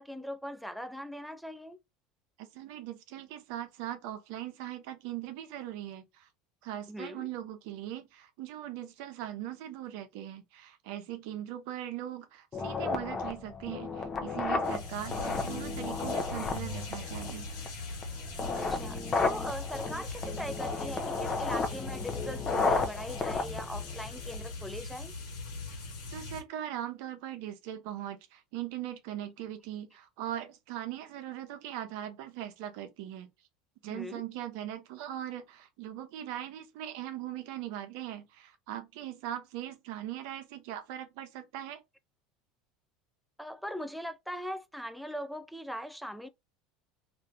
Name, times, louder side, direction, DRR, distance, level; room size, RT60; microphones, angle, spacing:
voice 1, 0.0-1.8 6.9-7.3 18.5-25.1 33.9-34.2 43.4-46.3, equal, ahead, 0.3 m, -40 dB
voice 2, 2.4-6.3 6.6-17.5 26.1-33.3 33.8-41.8, right 12 dB, 70° right, 0.7 m, -40 dB
sound 1, 12.5-24.5, left 3 dB, 30° left, 0.7 m, -33 dB
sound 2, 14.6-26.4, left 3 dB, 75° left, 1.4 m, -40 dB
2.6 x 2.5 x 3.3 m
supercardioid pair, 100°, 0 cm